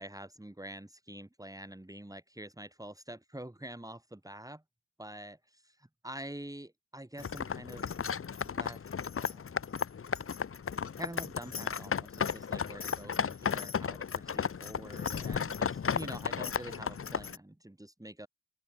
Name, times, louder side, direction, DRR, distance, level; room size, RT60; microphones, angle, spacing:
voice 1, 0.0-4.6 5.0-8.0 8.4-8.9 9.2-9.6 11.0-18.3, right 1 dB, 10° right, 5.1 m, -46 dB
sound 1, 7.2-17.4, left 6 dB, 40° left, 0.7 m, -34 dB
open air
wide cardioid pair, 150°, 34 cm